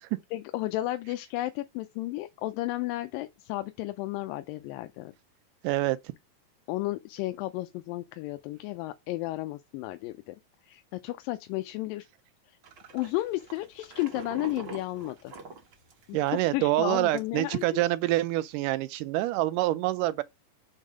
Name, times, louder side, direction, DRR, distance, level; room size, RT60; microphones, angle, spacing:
voice 1, 0.3-5.1 6.7-10.4 10.7-12.1 12.9-15.3 16.1-16.2 16.5-17.8, left 17 dB, 90° left, 2.3 m, -33 dB
voice 2, 5.6-6.0 16.1-20.2, right 16 dB, 80° right, 2.0 m, -26 dB
sound 1, 12.6-16.5 16.8-16.9 17.2-17.6, right 4 dB, 60° right, 1.2 m, -44 dB
6.6 x 3.6 x 4.9 m
omnidirectional pair, 3.9 m